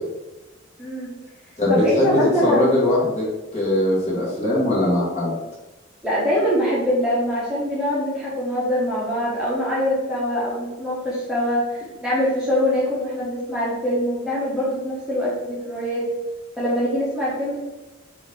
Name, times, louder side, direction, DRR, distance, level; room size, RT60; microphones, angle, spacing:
voice 1, 0.8-1.1 1.7-3.0 6.0-16.0 16.6-17.6, equal, 5° right, -9 dB, 1.0 m, -23 dB
voice 2, 1.6-3.3 3.5-5.3, left 1 dB, 30° left, -6 dB, 1.5 m, -20 dB
4.6 x 2.7 x 3.4 m, 1.1 s
head